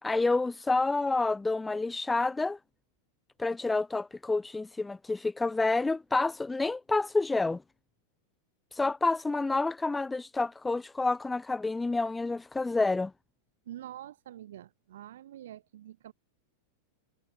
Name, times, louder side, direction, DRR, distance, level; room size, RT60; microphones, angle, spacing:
voice 1, 0.0-2.6 3.4-7.6 8.7-13.1, left 3 dB, 10° left, 3.1 m, -29 dB
voice 2, 13.7-16.1, right 12 dB, 75° right, 7.7 m, -46 dB
hypercardioid pair, 115°, 0 cm